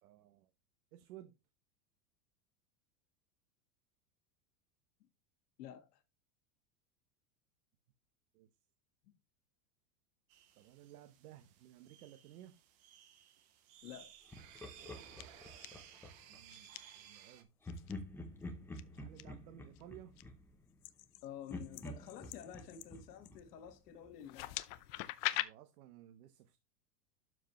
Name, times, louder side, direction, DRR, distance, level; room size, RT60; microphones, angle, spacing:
voice 1, 0.0-0.5 0.9-1.4 8.3-8.5 10.6-12.6 16.3-17.5 18.0-20.2 25.3-26.6, right 13 dB, 65° right, 1.1 m, -57 dB
voice 2, 5.6-6.0 9.0-9.2 13.8-14.1 21.2-24.6, left 10 dB, 80° left, 1.7 m, -50 dB
sound 1, 10.3-17.4, right 10 dB, 20° right, 0.3 m, -58 dB
sound 2, 14.3-14.8 15.2-15.7 16.5-16.8 17.7-17.9 18.7-19.2 19.7-20.2 20.8-23.5 24.2-25.4, left 18 dB, 40° left, 0.6 m, -42 dB
Laughter, 14.3-16.4 17.6-21.1 21.5-24.2, left 1 dB, 5° left, 0.7 m, -49 dB
12.0 x 4.8 x 3.1 m
supercardioid pair, 165°, 47 cm